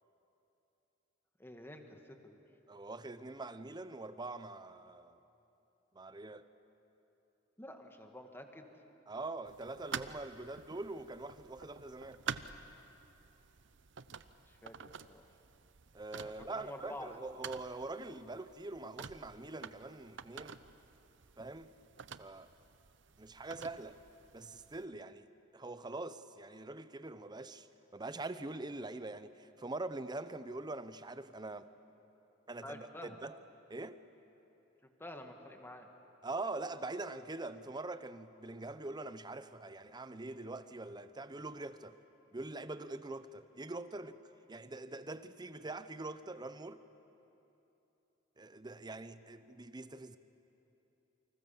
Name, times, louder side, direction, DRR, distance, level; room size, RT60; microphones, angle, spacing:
voice 1, 1.4-2.4 7.6-8.7 14.5-15.3 16.2-17.2 32.6-33.2 35.0-35.9, left 1 dB, 10° left, 1.9 m, -49 dB
voice 2, 2.7-5.2 5.9-6.5 9.1-12.2 15.9-20.6 21.4-21.7 22.1-22.5 23.2-24.0 24.3-25.3 25.5-27.7 27.9-31.7 32.5-33.4 33.7-34.0 36.2-42.0 42.3-44.2 44.5-46.8 48.4-50.2, right 2 dB, 20° right, 0.8 m, -44 dB
sound 1, 9.5-24.8, right 6 dB, 65° right, 0.8 m, -49 dB
29.0 x 25.5 x 7.3 m
head